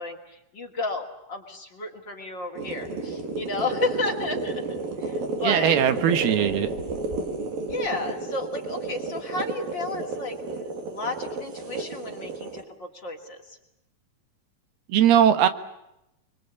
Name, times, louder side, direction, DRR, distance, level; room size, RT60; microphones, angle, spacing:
voice 1, 0.0-4.6 5.0-5.7 7.7-10.4 10.9-13.6, left 3 dB, 35° left, 2 dB, 2.5 m, -32 dB
sound 1, 2.6-12.6, right 3 dB, 65° right, 4.9 m, -32 dB
voice 2, 5.4-6.7 14.9-15.5, right 9 dB, 85° right, 10 dB, 3.4 m, -19 dB
30.0 x 23.0 x 8.3 m, 0.86 s
omnidirectional pair, 4.4 m